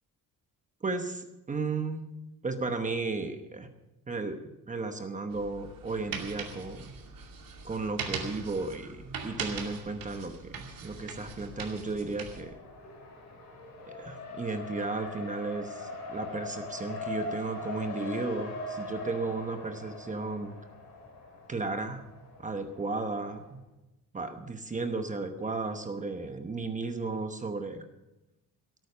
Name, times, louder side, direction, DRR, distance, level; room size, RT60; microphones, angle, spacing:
voice 1, 0.8-2.0 2.4-3.7 4.1-4.4 4.7-6.9 7.6-12.5 14.0-20.6 21.5-22.0 22.4-23.6 24.1-27.9, right 3 dB, 20° right, 6 dB, 1.0 m, -34 dB
sound 1, 5.3-12.4, right 5 dB, 60° right, 2.5 m, -41 dB
Race car auto racing, 11.0-23.6, left 2 dB, 45° left, 5.6 m, -42 dB
17.5 x 9.2 x 6.7 m, 0.97 s
cardioid pair, 180°, 37 cm